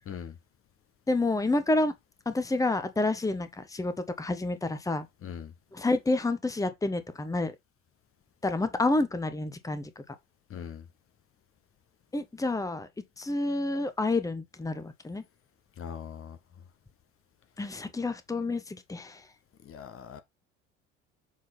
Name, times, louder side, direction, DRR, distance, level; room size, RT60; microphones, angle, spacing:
voice 1, 1.1-1.9 2.2-5.1 5.7-7.5 8.4-10.1 12.1-12.9 13.2-15.2 17.6-19.3, left 2 dB, 10° left, 1.1 m, -29 dB
voice 2, 5.2-5.5 10.5-10.8 15.8-16.4 19.6-20.2, left 8 dB, 40° left, 1.1 m, -40 dB
7.5 x 3.9 x 4.1 m
hypercardioid pair, 65°, 35 cm